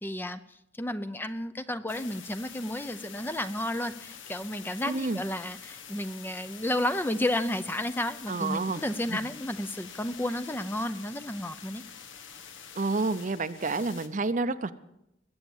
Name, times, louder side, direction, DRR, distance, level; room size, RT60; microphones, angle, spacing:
voice 1, 0.0-11.8, left 1 dB, 10° left, 11 dB, 0.5 m, -32 dB
sound 1, 1.9-14.1, left 7 dB, 85° left, 1.4 m, -46 dB
voice 2, 4.9-5.2 8.3-8.8 9.1-9.2 12.8-14.7, right 3 dB, 40° right, 12 dB, 0.7 m, -29 dB
21.0 x 8.6 x 7.1 m, 0.83 s
head